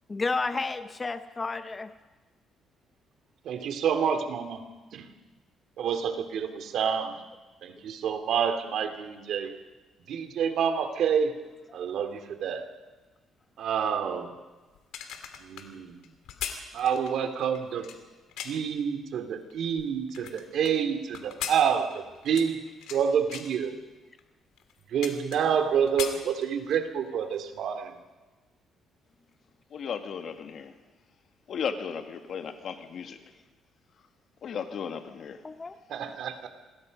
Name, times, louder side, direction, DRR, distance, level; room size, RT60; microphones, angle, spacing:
voice 1, 0.1-2.0 35.4-35.8, left 3 dB, 25° left, 0.8 m, -31 dB
voice 2, 3.4-4.6 4.9-5.1 5.8-7.2 7.6-9.6 10.1-11.4 11.7-12.7 13.6-14.3 15.4-16.0 16.7-17.9 18.4-22.6 22.9-23.7 24.9-28.0 35.9-36.5, right 7 dB, 65° right, 2.6 m, -28 dB
sound 1, 14.8-18.8 19.3-20.7 21.1-23.0 23.3-23.6 24.2-24.3 24.6-25.6 25.9-26.9 27.2-27.4, left 9 dB, 90° left, 2.8 m, -39 dB
voice 3, 29.7-30.7 31.5-33.2 34.4-35.4, left 7 dB, 55° left, 2.0 m, -35 dB
27.5 x 21.5 x 5.3 m
cardioid pair, 130°, 0 cm